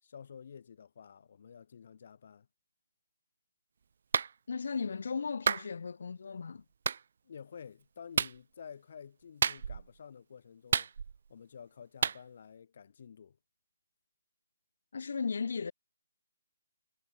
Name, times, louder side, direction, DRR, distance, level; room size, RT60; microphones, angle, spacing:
voice 1, 0.0-2.5 7.2-10.9 11.3-13.4, left 7 dB, 40° left, 4.0 m, -50 dB
Clapping, 4.1-4.3 5.5-5.7 6.9-7.0 8.2-8.4 9.4-9.9 10.7-11.3 12.0-12.2, right 6 dB, 50° right, 0.8 m, -30 dB
voice 2, 4.5-6.6 14.9-15.7, left 5 dB, 60° left, 1.1 m, -36 dB
hypercardioid pair, 170°, 0 cm